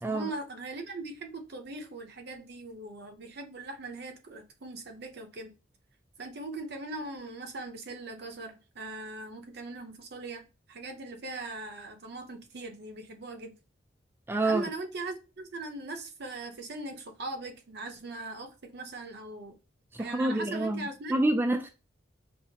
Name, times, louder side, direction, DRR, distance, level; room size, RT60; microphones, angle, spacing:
voice 1, 0.0-5.5 6.2-13.5 14.4-19.6 20.0-21.2, right 2 dB, 60° right, 0.8 m, -40 dB
voice 2, 14.3-14.6 20.0-20.8 21.1-21.7, right 2 dB, 10° right, 0.3 m, -27 dB
5.5 x 2.1 x 2.7 m
head